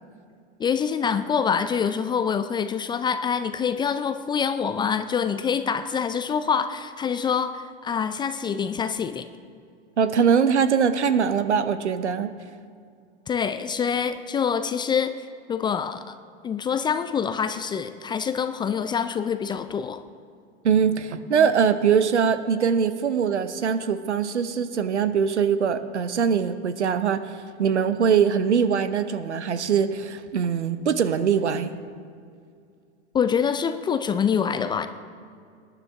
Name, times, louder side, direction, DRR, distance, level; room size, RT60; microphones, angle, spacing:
voice 1, 0.6-9.3 13.3-15.1 15.5-16.1 16.4-20.0 33.1-34.9, left 7 dB, 15° left, 10 dB, 0.3 m, -25 dB
voice 2, 10.0-12.3 20.6-27.3 27.6-31.7, right 7 dB, 85° right, 12 dB, 0.8 m, -22 dB
19.5 x 10.0 x 3.5 m, 2.3 s
hypercardioid pair, 95°, 34 cm